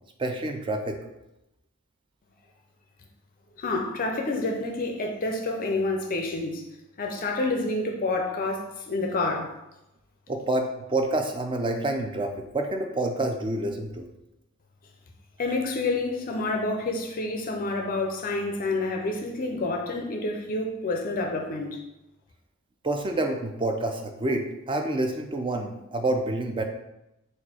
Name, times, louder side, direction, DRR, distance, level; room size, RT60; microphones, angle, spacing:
voice 1, 0.2-1.0 10.3-14.1 22.8-26.6, right 2 dB, 20° right, 4 dB, 0.4 m, -28 dB
voice 2, 3.6-6.6 7.0-9.5 15.4-21.8, left 2 dB, 40° left, 2 dB, 0.4 m, -28 dB
4.2 x 2.5 x 4.2 m, 0.91 s
head